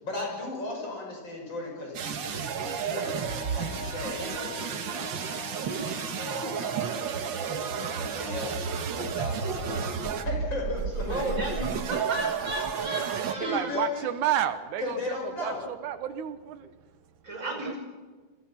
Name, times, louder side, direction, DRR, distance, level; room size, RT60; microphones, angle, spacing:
voice 1, 0.0-3.2 3.5-5.1 5.6-7.2 7.6-11.2 13.3-14.1 14.8-15.6, left 3 dB, 35° left, -1 dB, 7.0 m, -36 dB
sound 1, 1.9-13.3, right 7 dB, 55° right, 1.4 m, -32 dB
Wind instrument woodwind instrument, 3.0-8.8, left 8 dB, 80° left, 3.7 m, -46 dB
voice 2, 11.1-13.7 17.2-17.8, right 1 dB, 25° right, 1 dB, 5.7 m, -33 dB
voice 3, 13.1-16.7 17.3-17.8, right 11 dB, 80° right, 11 dB, 2.6 m, -31 dB
28.0 x 23.5 x 5.9 m, 1.4 s
omnidirectional pair, 3.5 m